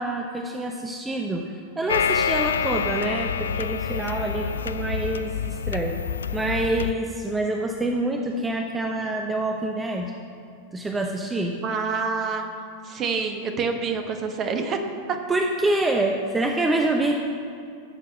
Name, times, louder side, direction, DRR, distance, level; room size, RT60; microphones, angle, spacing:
voice 1, 0.0-1.4 1.8-6.0 6.3-10.1 10.7-11.5 15.3-17.1, right 2 dB, 10° right, 2 dB, 0.9 m, -26 dB
sound 1, 1.9-6.9, left 7 dB, 70° left, 0.3 m, -27 dB
voice 2, 11.6-12.5 12.8-14.8 15.1-15.2, right 5 dB, 30° right, 5 dB, 1.3 m, -27 dB
13.5 x 6.9 x 7.4 m, 2.3 s
figure-of-eight pair, 90°, 0 cm